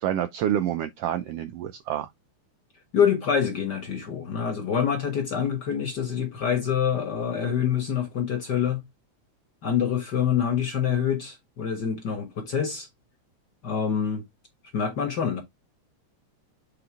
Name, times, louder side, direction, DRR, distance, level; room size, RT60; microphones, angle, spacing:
voice 1, 0.0-2.1, right 11 dB, 85° right, 1.4 m, -28 dB
voice 2, 2.9-8.8 9.6-12.9 13.6-14.2 14.7-15.4, left 7 dB, 50° left, 1.3 m, -26 dB
7.8 x 3.9 x 3.5 m
omnidirectional pair, 3.3 m